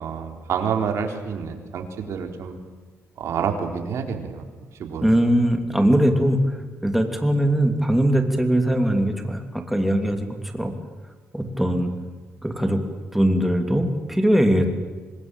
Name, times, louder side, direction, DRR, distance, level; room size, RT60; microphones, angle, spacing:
voice 1, 0.0-2.6 3.2-4.4 4.8-5.1, right 6 dB, 75° right, 4 dB, 3.9 m, -28 dB
voice 2, 5.0-6.4 6.8-10.7 11.3-11.9 12.4-12.8 13.1-14.7, right 1 dB, 5° right, 5 dB, 2.9 m, -21 dB
26.0 x 20.5 x 9.0 m, 1.4 s
cardioid pair, 125°, 5 cm